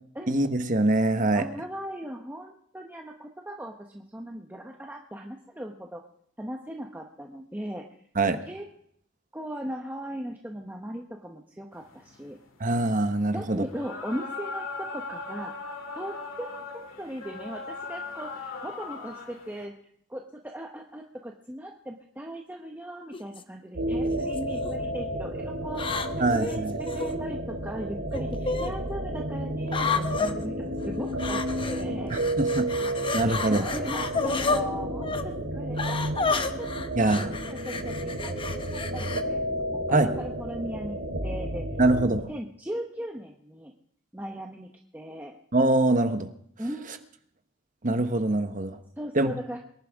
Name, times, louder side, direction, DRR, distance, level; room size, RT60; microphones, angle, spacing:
voice 1, 0.3-1.4 8.2-8.4 12.6-13.6 26.2-26.8 32.1-32.7 33.1-33.6 37.0-37.3 39.9-40.1 41.8-42.2 45.5-46.3 47.8-48.8 49.1-49.3, right 2 dB, 40° right, 8 dB, 1.1 m, -23 dB
voice 2, 1.3-6.0 6.4-7.9 8.5-8.7 9.3-12.4 13.3-15.5 15.9-19.7 20.1-26.0 26.3-26.7 26.9-32.1 33.4-36.0 36.6-36.7 37.5-39.5 39.9-41.6 42.1-43.7 44.1-45.3 46.6-47.0 49.0-49.6, equal, 10° right, 1 dB, 0.9 m, -38 dB
sound 1, 11.7-19.7, left 3 dB, 80° left, 2.2 m, -39 dB
sound 2, 23.1-23.4 24.2-24.7 25.7-27.1 28.1-28.7 29.7-30.3 31.2-31.8 32.1-34.6 35.0-35.2 35.8-39.2, left 4 dB, 25° left, 0.8 m, -30 dB
sound 3, 23.8-42.2, right 1 dB, 85° right, 3.2 m, -31 dB
23.5 x 11.0 x 3.6 m, 0.68 s
head